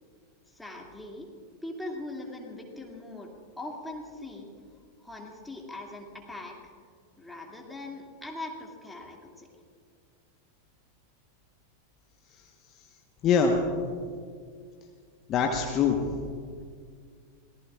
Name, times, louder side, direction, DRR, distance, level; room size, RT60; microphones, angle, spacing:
voice 1, 0.5-1.3 1.6-3.3 3.6-4.5 5.0-6.7 7.2-9.5, left 2 dB, 5° left, -1 dB, 2.5 m, -41 dB
voice 2, 13.2-13.6 15.3-16.2, left 5 dB, 30° left, 2 dB, 1.2 m, -24 dB
25.5 x 18.5 x 2.5 m, 2.1 s
figure-of-eight pair, 90°, 0 cm